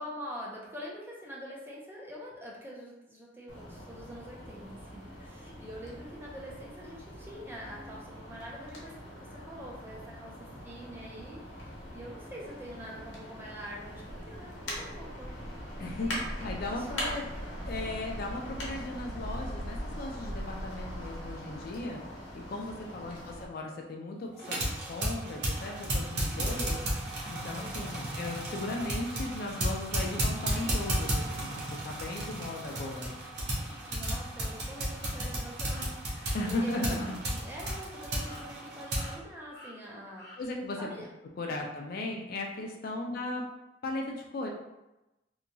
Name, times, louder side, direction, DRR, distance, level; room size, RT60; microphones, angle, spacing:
voice 1, 0.0-15.3 16.0-17.8 18.4-18.6 22.7-23.0 27.6-28.0 33.9-40.4 40.8-41.1 43.0-43.1, equal, 10° right, -4 dB, 0.4 m, -45 dB
sound 1, 3.5-23.4, equal, 80° left, 0.8 m, -41 dB
voice 2, 15.8-17.3 17.6-22.0 22.3-26.8 27.3-33.2 33.6-33.8 36.3-37.2 40.4-40.9 41.4-43.4 43.8-44.5, left 2 dB, 50° left, 1 dB, 0.3 m, -37 dB
sound 2, 24.4-39.1, right 1 dB, 55° right, 0.7 m, -33 dB
sound 3, 34.3-34.5 35.0-35.1 35.6-35.9 36.3-36.4 36.9-37.1 37.6-37.8 38.2-38.7 38.9-39.2 39.5-39.8 40.2-40.4, left 1 dB, 25° left, 0.9 m, -50 dB
2.8 x 2.2 x 2.6 m, 0.97 s
head